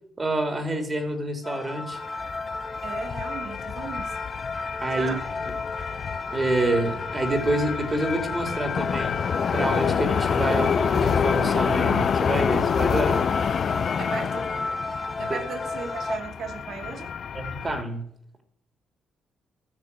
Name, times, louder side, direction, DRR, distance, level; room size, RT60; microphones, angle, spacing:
voice 1, 0.2-2.0 4.8-5.2 5.5-5.6 6.3-9.1 9.5-13.3 15.3-15.4 17.3-18.0, right 2 dB, 25° right, 6 dB, 3.1 m, -27 dB
sound 1, 1.4-16.2, left 3 dB, 25° left, 1.6 m, -33 dB
sound 2, 2.0-17.8, left 7 dB, 55° left, 0.5 m, -28 dB
voice 2, 2.8-4.1 5.0-5.2 14.0-14.5 15.2-17.1, right 6 dB, 60° right, 7 dB, 2.3 m, -36 dB
14.5 x 6.6 x 8.2 m, 0.70 s
cardioid pair, 90°, 0 cm